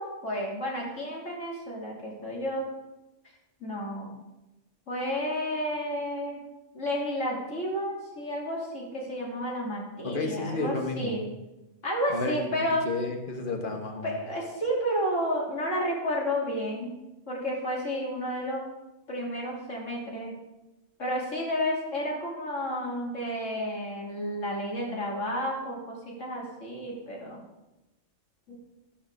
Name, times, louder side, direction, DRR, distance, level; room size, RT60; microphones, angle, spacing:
voice 1, 0.0-2.7 3.6-4.1 4.9-6.4 6.7-11.3 11.8-12.8 14.0-16.9 17.3-18.6 19.1-20.4 21.0-27.4 28.5-28.6, equal, 75° left, -3 dB, 3.2 m, -31 dB
voice 2, 10.0-11.2 12.1-14.2, left 3 dB, 45° left, 3 dB, 1.6 m, -32 dB
14.5 x 5.6 x 6.6 m, 1.0 s
omnidirectional pair, 1.3 m